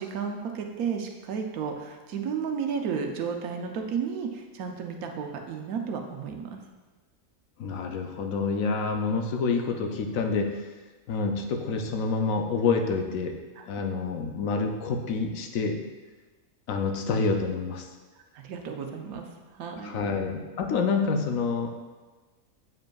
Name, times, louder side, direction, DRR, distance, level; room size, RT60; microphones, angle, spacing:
voice 1, 0.0-6.6 13.6-13.8 18.3-19.3 19.5-20.1, right 6 dB, 90° right, 3 dB, 1.2 m, -33 dB
voice 2, 7.6-10.7 11.1-13.3 13.7-15.8 16.7-17.9 19.8-21.7, left 4 dB, 75° left, 4 dB, 1.0 m, -27 dB
8.1 x 5.1 x 2.3 m, 1.3 s
omnidirectional pair, 1.5 m